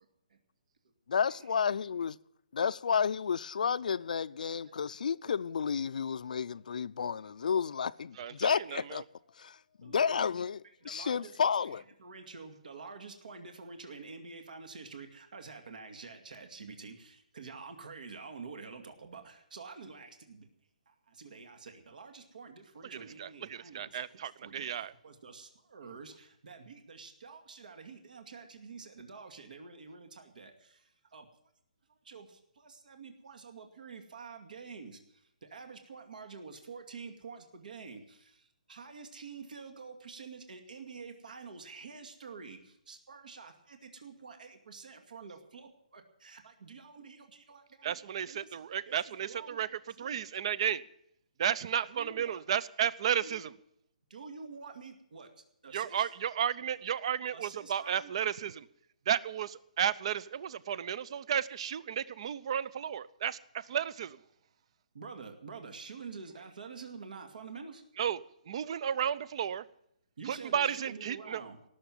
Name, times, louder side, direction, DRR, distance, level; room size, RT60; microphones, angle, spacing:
voice 1, 1.1-2.1 2.6-9.0 9.4-10.6 10.8-11.8, left 6 dB, 65° left, 0.5 m, -31 dB
voice 2, 5.0-5.3 9.8-10.3 10.8-20.5 20.9-31.3 32.0-48.0 48.3-48.6 48.9-49.6 49.9-50.3 51.9-52.4 53.2-53.5 54.1-55.3 55.6-56.1 57.3-58.1 64.9-67.8 70.2-71.6, right 4 dB, 70° right, 2.3 m, -48 dB
voice 3, 8.2-9.0 22.8-24.9 47.8-49.7 50.0-50.8 51.4-53.5 55.7-58.7 59.1-64.2 68.0-68.2 68.5-69.6 70.3-71.4, right 9 dB, 40° right, 0.6 m, -33 dB
18.0 x 7.0 x 9.1 m
hypercardioid pair, 165°, 5 cm